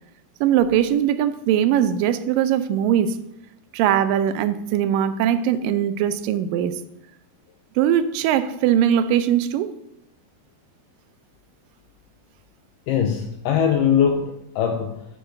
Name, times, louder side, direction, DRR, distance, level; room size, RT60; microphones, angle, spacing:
voice 1, 0.4-3.2 3.7-6.8 7.8-9.7, right 10 dB, 80° right, 2.1 m, -20 dB
voice 2, 12.9-15.1, left 8 dB, 80° left, 2.0 m, -21 dB
8.6 x 3.9 x 6.4 m
omnidirectional pair, 4.2 m